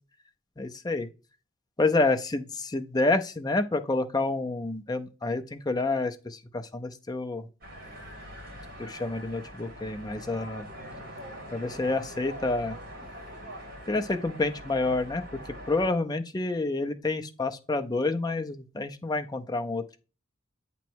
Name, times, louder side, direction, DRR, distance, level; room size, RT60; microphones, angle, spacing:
voice 1, 0.6-1.1 1.8-7.5 8.8-10.7 11.5-12.8 13.9-15.2 15.7-20.0, left 2 dB, 20° left, 0.5 m, -28 dB
sound 1, 7.6-15.9, equal, 50° right, 2.0 m, -43 dB
8.0 x 3.1 x 4.5 m
head